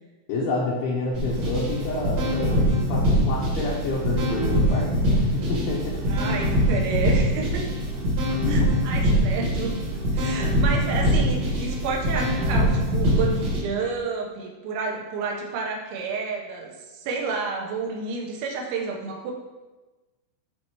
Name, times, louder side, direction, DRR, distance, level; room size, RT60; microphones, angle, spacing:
voice 1, 0.3-6.2 8.4-8.7, left 2 dB, 80° left, -5 dB, 3.0 m, -29 dB
sound 1, 1.1-13.6, equal, 55° right, 1.7 m, -23 dB
voice 2, 6.1-7.6 8.5-9.8 10.1-19.3, right 4 dB, 75° right, 0 dB, 2.9 m, -30 dB
12.0 x 4.3 x 3.0 m, 1.2 s
omnidirectional pair, 5.8 m